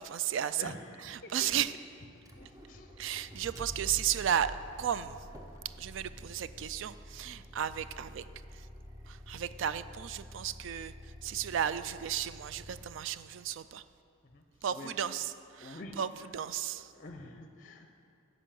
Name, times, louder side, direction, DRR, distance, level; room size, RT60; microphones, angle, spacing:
voice 1, 0.0-0.7 1.0-1.7 3.0-5.2 5.8-8.3 9.1-10.9 11.2-13.8 14.6-16.1 16.3-16.9, right 9 dB, 60° right, 14 dB, 0.3 m, -34 dB
voice 2, 0.6-1.8 2.3-2.9 14.3-14.4 14.7-15.0 15.6-16.0 16.7-17.9, left 2 dB, 40° left, 6 dB, 0.6 m, -47 dB
Motor vehicle (road), 2.2-13.3, equal, 15° right, 0.7 m, -48 dB
10.0 x 5.3 x 7.5 m, 2.6 s
head